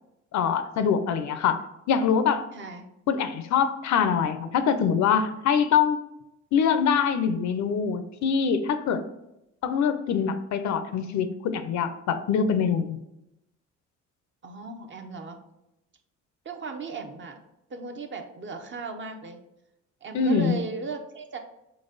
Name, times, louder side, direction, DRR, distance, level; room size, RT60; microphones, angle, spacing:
voice 1, 0.3-1.6 1.9-2.5 3.1-6.0 6.5-9.0 9.6-13.0 20.1-20.6, left 7 dB, 65° left, 11 dB, 0.5 m, -24 dB
voice 2, 2.5-2.9 14.4-15.4 16.4-17.4 17.7-19.4 20.0-21.4, right 3 dB, 40° right, 5 dB, 0.7 m, -37 dB
3.9 x 3.3 x 3.9 m, 0.87 s
cardioid pair, 90°, 30 cm